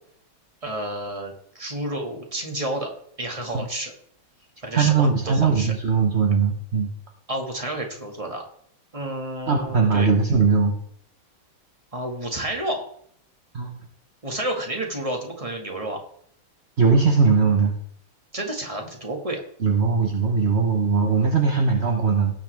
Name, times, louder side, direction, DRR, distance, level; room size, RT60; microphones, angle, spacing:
voice 1, 0.6-2.9 3.2-3.9 4.6-5.7 7.3-8.4 8.9-10.1 11.9-12.9 14.2-16.0 18.3-19.4, right 1 dB, 15° right, 2 dB, 1.9 m, -30 dB
voice 2, 4.7-6.9 9.5-10.7 13.5-13.8 16.8-17.7 19.6-22.3, right 5 dB, 40° right, 1 dB, 1.0 m, -20 dB
18.0 x 7.3 x 3.5 m, 0.63 s
omnidirectional pair, 2.4 m